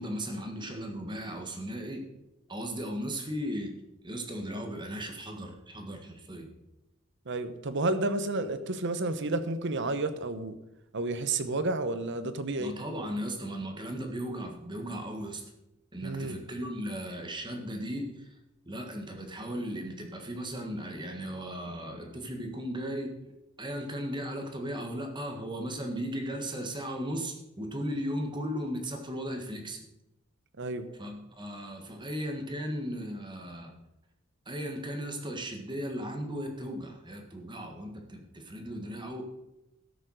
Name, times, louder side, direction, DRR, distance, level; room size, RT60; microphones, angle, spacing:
voice 1, 0.0-2.0 2.5-3.7 4.0-6.5 12.6-15.4 15.9-18.3 18.6-23.2 23.6-29.8 31.0-33.7 34.4-39.2, equal, 20° right, 3 dB, 1.6 m, -36 dB
voice 2, 7.2-10.6 10.9-12.7 16.0-16.4 30.6-30.9, right 2 dB, 60° right, 11 dB, 1.0 m, -31 dB
12.5 x 6.9 x 6.4 m, 0.91 s
head